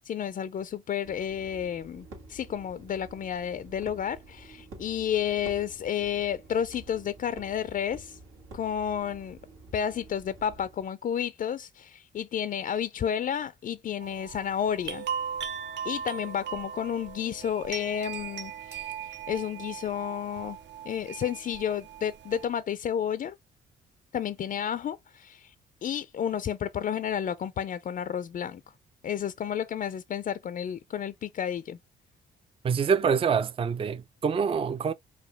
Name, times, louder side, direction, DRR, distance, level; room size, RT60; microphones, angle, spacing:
voice 1, 0.0-8.2 8.5-9.4 9.7-15.1 15.8-20.6 20.9-23.4 24.1-25.5 25.8-28.6 29.0-31.8, left 9 dB, 45° left, 0.4 m, -31 dB
sound 1, 1.0-10.8, right 2 dB, 90° right, 1.9 m, -49 dB
sound 2, 14.0-22.5, right 7 dB, 65° right, 0.8 m, -38 dB
voice 2, 32.6-34.9, right 6 dB, 30° right, 0.4 m, -26 dB
4.9 x 2.6 x 3.2 m
cardioid pair, 90°, 20 cm